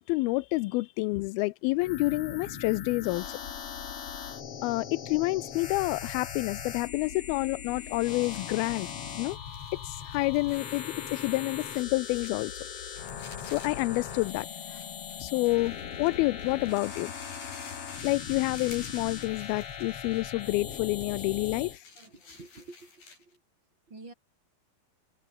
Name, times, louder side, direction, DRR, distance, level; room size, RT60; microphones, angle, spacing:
voice 1, 0.1-3.4 4.6-8.9 9.2-9.4 9.8-12.5 13.5-14.8 15.2-17.1 18.0-21.8, left 22 dB, 90° left, 2.5 m, -29 dB
sound 1, 1.8-21.8, left 8 dB, 45° left, 2.4 m, -40 dB
sound 2, 7.6-23.4, left 4 dB, 70° left, 9.6 m, -51 dB
voice 2, 22.0-23.4 23.9-24.1, right 3 dB, 30° right, 5.3 m, -49 dB
omnidirectional pair, 4.3 m